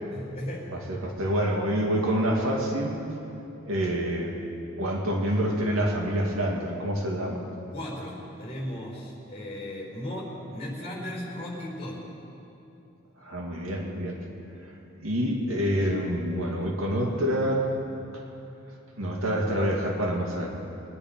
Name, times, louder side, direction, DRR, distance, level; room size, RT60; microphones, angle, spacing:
voice 1, 0.1-0.7 7.7-12.0, left 1 dB, 30° left, -2 dB, 4.3 m, -36 dB
voice 2, 0.7-2.9 3.6-4.4 4.8-7.5 13.2-14.2 15.0-17.7 18.1-18.2 19.0-20.5, equal, 90° right, 0 dB, 2.2 m, -27 dB
22.0 x 10.0 x 5.2 m, 2.9 s
head